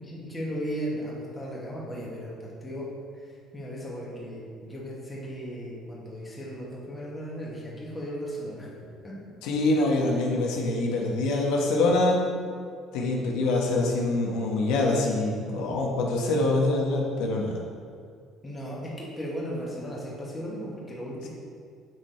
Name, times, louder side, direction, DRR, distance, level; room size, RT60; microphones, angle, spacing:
voice 1, 0.0-2.9 3.5-9.1 18.4-21.3, equal, 15° left, -6 dB, 1.8 m, -36 dB
voice 2, 9.4-12.2 12.9-17.6, left 2 dB, 85° left, -1 dB, 1.3 m, -25 dB
7.7 x 6.0 x 4.5 m, 2.3 s
cardioid pair, 160°, 0 cm